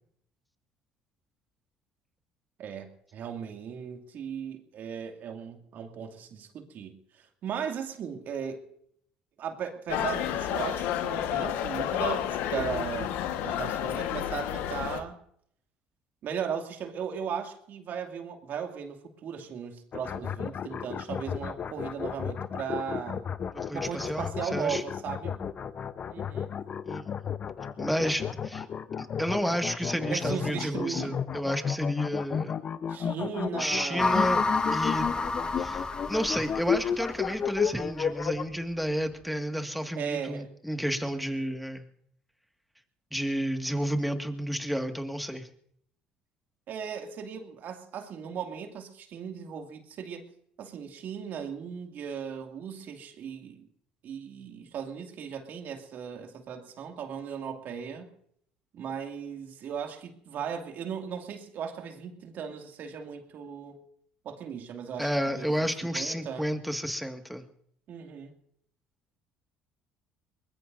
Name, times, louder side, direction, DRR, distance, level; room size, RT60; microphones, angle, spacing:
voice 1, 2.6-7.0 7.4-8.6 9.4-15.2 16.2-23.2 23.7-25.4 26.1-26.5 30.1-31.2 32.9-34.4 40.0-40.5 46.7-50.3 50.6-53.7 54.0-58.1 58.7-63.8 64.2-65.1 65.3-65.7 65.9-66.5 67.9-68.3, right 7 dB, 60° right, 4 dB, 2.5 m, -37 dB
sound 1, 9.9-15.0, left 10 dB, 75° left, 1.5 m, -30 dB
sound 2, 19.9-38.4, left 7 dB, 45° left, 0.9 m, -32 dB
voice 2, 23.5-24.8 26.9-27.1 27.8-28.7 29.0-32.6 33.6-34.4 34.7-35.1 35.6-41.9 43.1-45.5 65.0-67.4, equal, ahead, 5 dB, 2.0 m, -31 dB
sound 3, 34.0-37.3, left 3 dB, 25° left, 1.7 m, -29 dB
23.5 x 20.5 x 2.7 m, 0.69 s
supercardioid pair, 70°, 4 cm